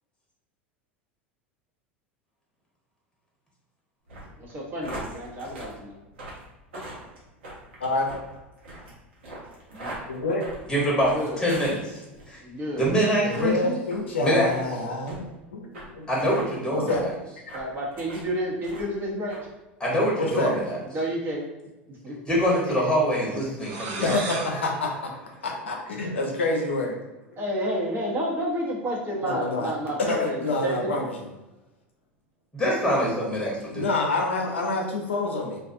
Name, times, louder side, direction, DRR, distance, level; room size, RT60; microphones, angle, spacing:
sound 1, 4.1-12.3 12.7-13.0 13.3-13.5 13.9-14.0 14.5-14.6 15.1-15.2 15.7-15.8 16.1-16.4 16.9-17.0 17.5-18.3 18.6-19.0 19.3-19.4, right 1 dB, 75° right, 0.9 m, -40 dB
voice 1, 4.4-6.0 9.7-9.9 11.0-11.5 12.4-12.9 17.5-19.4 20.8-21.4 21.9-22.1 22.6-22.7 27.4-31.1, equal, 35° right, -3 dB, 0.9 m, -30 dB
voice 2, 7.8-8.1 10.1-10.4 13.2-16.0 16.7-17.0 20.2-20.6 24.0-25.1 25.4-27.0 29.2-29.7 30.0-31.1 33.7-35.6, left 2 dB, 85° left, 1 dB, 0.5 m, -27 dB
voice 3, 10.7-12.0 12.3-12.4 12.8-13.7 14.2-14.5 16.1-17.1 19.8-20.8 22.3-24.2 32.5-33.9, equal, 10° left, -5 dB, 1.0 m, -24 dB
sound 2, 23.6-26.2, right 4 dB, 55° right, 0.4 m, -37 dB
2.4 x 2.3 x 2.5 m, 1.0 s
hypercardioid pair, 80°, 6 cm